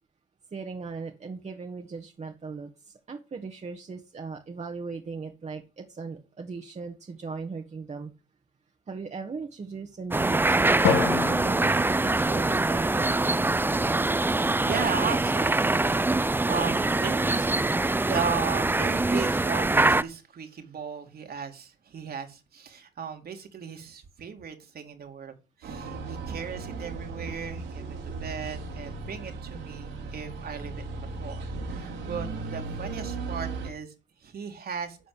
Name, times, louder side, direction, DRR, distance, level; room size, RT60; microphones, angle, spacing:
voice 1, 0.5-8.1 8.9-13.1, right 4 dB, 35° right, 1.6 m, -38 dB
sound 1, 10.1-20.0, right 2 dB, 10° right, 0.6 m, -24 dB
Drum, 10.8-13.1, left 7 dB, 75° left, 1.9 m, -30 dB
voice 2, 14.1-17.5 17.8-25.3 25.6-33.9 34.2-35.0, right 6 dB, 55° right, 2.6 m, -36 dB
sound 2, 25.6-33.7, right 3 dB, 80° right, 4.1 m, -36 dB
11.5 x 4.2 x 8.0 m
supercardioid pair, 65°, 19 cm